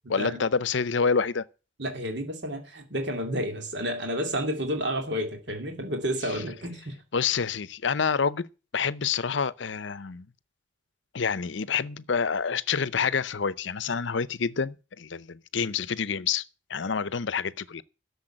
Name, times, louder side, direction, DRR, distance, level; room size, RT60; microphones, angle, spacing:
voice 1, 0.1-1.4 6.3-6.4 7.1-8.5 8.7-10.3 11.1-16.4 16.7-17.8, left 6 dB, 70° left, 0.6 m, -27 dB
voice 2, 1.8-6.9, equal, 60° right, 2.6 m, -30 dB
12.0 x 7.0 x 8.8 m
head